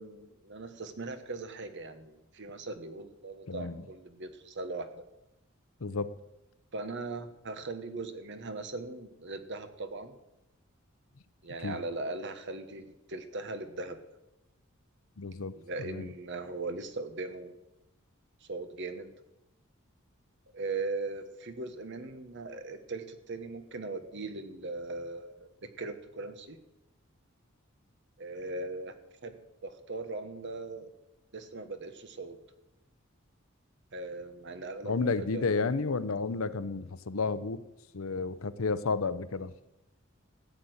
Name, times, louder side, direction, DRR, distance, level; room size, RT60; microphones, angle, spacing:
voice 1, 0.0-5.0 6.7-10.1 11.4-14.0 15.5-17.5 18.5-19.1 20.5-26.6 28.2-28.9 29.2-29.4 29.6-30.9 31.3-32.4 33.9-35.5, right 3 dB, 60° right, 9 dB, 1.3 m, -39 dB
voice 2, 3.5-3.8 5.8-6.1 11.6-11.8 15.2-16.1 34.8-37.6 37.9-39.5, left 4 dB, 75° left, 14 dB, 0.7 m, -32 dB
15.0 x 8.6 x 8.0 m, 0.94 s
head